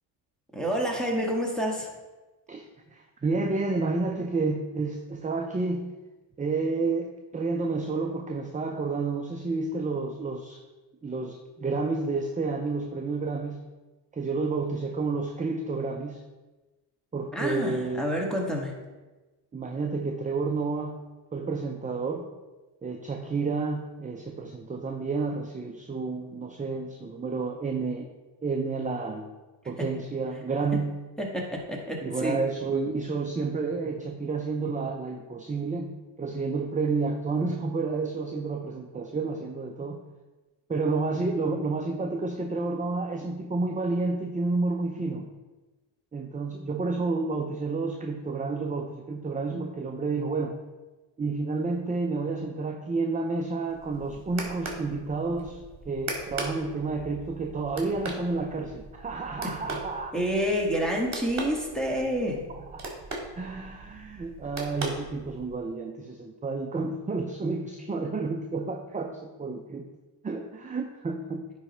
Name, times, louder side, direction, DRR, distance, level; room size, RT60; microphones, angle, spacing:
voice 1, 0.5-1.9 17.3-18.7 31.3-32.4 60.1-62.4, equal, ahead, -1 dB, 1.7 m, -28 dB
voice 2, 2.5-5.9 6.4-10.6 11.0-13.7 14.1-16.2 17.1-18.1 19.5-22.3 22.8-28.1 28.4-29.3 29.7-31.0 32.0-40.0 40.7-45.3 46.1-50.6 51.2-60.1 62.5-63.0 63.4-69.9 70.2-71.5, right 3 dB, 15° right, 3 dB, 0.5 m, -30 dB
sound 1, 53.7-65.6, right 2 dB, 35° right, 1.8 m, -40 dB
9.9 x 3.3 x 4.3 m, 1.2 s
cardioid pair, 80°, 47 cm